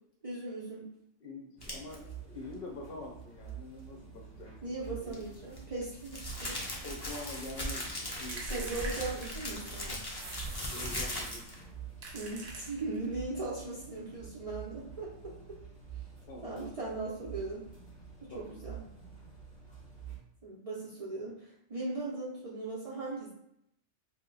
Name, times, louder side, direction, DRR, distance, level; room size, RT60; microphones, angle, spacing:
voice 1, 0.2-0.9 4.6-6.6 8.5-10.0 12.1-15.1 16.4-17.6 18.3-18.8 20.4-23.3, right 2 dB, 45° right, -6 dB, 0.5 m, -38 dB
voice 2, 1.2-5.2 6.7-9.2 10.7-11.5 12.2-12.4 16.3-16.7 18.3-18.7, left 2 dB, 60° left, 0 dB, 0.7 m, -46 dB
sound 1, 1.6-1.9 5.0-11.6, left 1 dB, 35° left, 0.4 m, -39 dB
sound 2, 1.6-20.2, right 7 dB, 5° left, 1.1 m, -48 dB
sound 3, 8.3-9.7 10.2-11.5 12.0-13.1, right 3 dB, 70° right, 0.9 m, -45 dB
2.7 x 2.1 x 3.8 m, 0.77 s
omnidirectional pair, 1.2 m